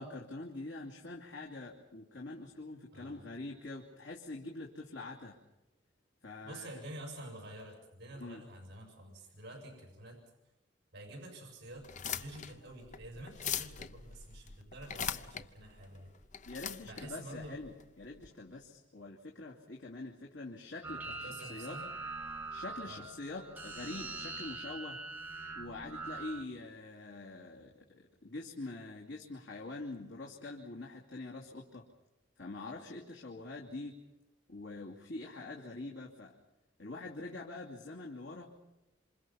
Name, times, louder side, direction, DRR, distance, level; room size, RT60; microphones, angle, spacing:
voice 1, 0.0-5.4 6.2-6.7 8.2-8.4 16.5-21.8 22.5-25.0 25.5-31.9 32.4-34.0 34.5-36.4 36.8-38.5, left 2 dB, 80° left, -2 dB, 2.8 m, -45 dB
voice 2, 2.9-3.3 6.4-10.2 10.9-16.1 16.8-17.6 21.0-21.9 22.9-23.1, right 1 dB, 60° right, 2 dB, 6.2 m, -48 dB
sound 1, 11.8-18.3, left 8 dB, 40° left, 0.8 m, -41 dB
sound 2, 20.8-26.4, right 3 dB, 10° right, 2.2 m, -43 dB
27.5 x 27.0 x 5.8 m, 0.99 s
head